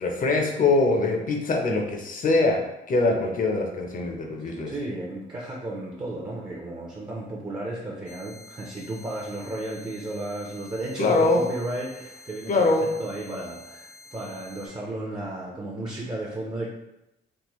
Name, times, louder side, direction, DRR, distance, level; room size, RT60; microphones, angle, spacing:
voice 1, 0.0-2.6 2.9-4.7 11.0-11.4 12.5-12.9, left 3 dB, 45° left, 2 dB, 0.7 m, -23 dB
voice 2, 4.4-16.7, right 1 dB, 20° right, -4 dB, 0.6 m, -34 dB
sound 1, 8.1-14.7, left 2 dB, 85° left, 0.7 m, -49 dB
3.6 x 2.2 x 3.0 m, 0.90 s
cardioid pair, 90°, 20 cm